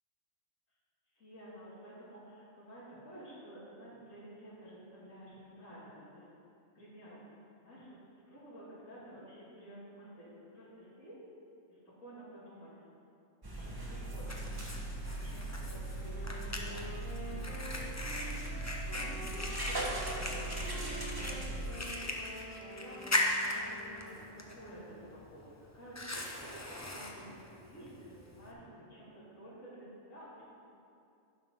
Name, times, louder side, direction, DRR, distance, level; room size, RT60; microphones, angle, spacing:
voice 1, 1.2-6.2 6.7-7.2 7.6-8.0 8.3-10.3 10.5-11.1 11.7-12.9 13.4-14.4 14.9-16.3 16.6-16.9 17.1-18.5 18.8-19.2 19.5-20.7 21.2-22.4 22.7-23.0 23.5-25.4 25.7-30.4, right 1 dB, 80° left, -11 dB, 2.9 m, -52 dB
sound 1, 13.4-21.7, right 1 dB, 20° right, 1.0 m, -39 dB
Fire, 13.6-28.5, left 2 dB, 15° left, 0.6 m, -40 dB
Wind instrument woodwind instrument, 16.0-24.0, right 1 dB, 70° right, 2.7 m, -48 dB
11.0 x 5.9 x 5.4 m, 2.6 s
omnidirectional pair, 1.3 m